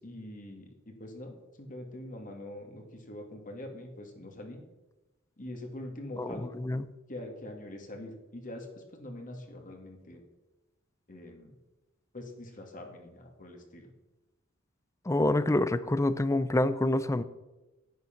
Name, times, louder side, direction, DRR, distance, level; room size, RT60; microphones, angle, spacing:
voice 1, 0.0-4.6 5.4-6.6 7.1-10.2 11.1-11.5 12.1-13.9, left 1 dB, 40° left, 3 dB, 2.1 m, -44 dB
voice 2, 6.2-6.8 15.1-17.2, left 1 dB, 15° left, 14 dB, 0.5 m, -27 dB
10.5 x 9.8 x 5.9 m, 1.1 s
head